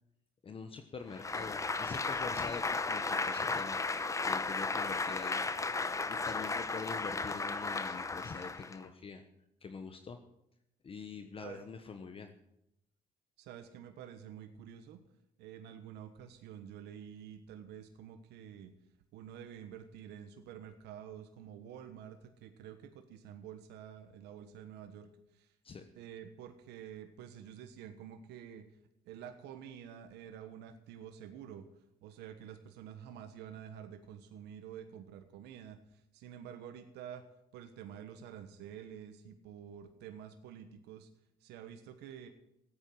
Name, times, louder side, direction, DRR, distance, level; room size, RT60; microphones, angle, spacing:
voice 1, 0.4-5.4 6.1-9.2 9.6-10.2 10.8-12.3 25.6-25.8, left 5 dB, 35° left, 7 dB, 1.1 m, -45 dB
Applause, 1.1-8.9, left 3 dB, 20° left, 0.8 m, -35 dB
voice 2, 13.4-15.0 15.4-18.7 19.1-25.1 25.3-25.5 26.0-28.6 29.0-31.6 32.0-37.2 37.5-41.1 41.4-42.3, right 9 dB, 85° right, 7 dB, 1.3 m, -49 dB
15.0 x 9.0 x 7.7 m, 0.81 s
cardioid pair, 110°, 17 cm